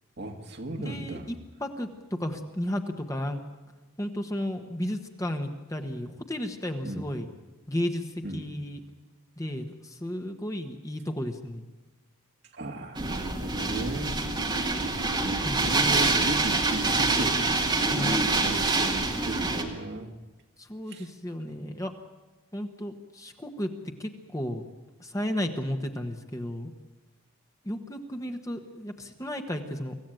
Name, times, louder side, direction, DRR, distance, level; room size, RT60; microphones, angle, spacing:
voice 1, 0.2-1.3 6.8-7.0 8.2-8.5 12.5-14.2 15.2-20.1 20.9-21.1, right 1 dB, 50° right, 3 dB, 2.0 m, -35 dB
voice 2, 0.8-1.3 1.6-3.4 4.0-7.3 7.7-8.8 9.4-11.7 15.0-15.1 15.4-15.6 17.9-18.2 20.6-21.9 22.5-23.7 24.0-24.6 25.0-26.7 27.6-29.9, left 1 dB, 15° left, 5 dB, 1.2 m, -33 dB
sound 1, 13.0-19.6, right 3 dB, 20° right, 1.9 m, -26 dB
25.0 x 15.0 x 9.1 m, 1.2 s
head